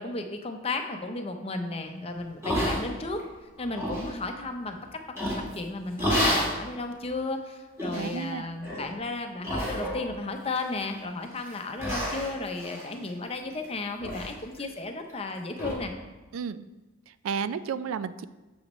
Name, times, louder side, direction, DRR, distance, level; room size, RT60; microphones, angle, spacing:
voice 1, 0.0-3.2 3.6-15.9, left 3 dB, 30° left, 5 dB, 0.6 m, -34 dB
sound 1, 2.4-3.2 3.6-4.1 5.2-5.6 6.0-6.6 7.1-7.2 7.8-8.2 8.6-8.9 9.4-10.1 10.5-11.0 11.4-11.5 11.8-13.7 14.0-14.3 14.6-14.7 15.1-15.2 15.6-15.7, equal, 15° right, 1.9 m, -30 dB
voice 2, 7.9-8.5 16.3-16.7 17.1-18.2, right 6 dB, 90° right, 14 dB, 0.4 m, -32 dB
8.3 x 7.1 x 3.1 m, 1.2 s
head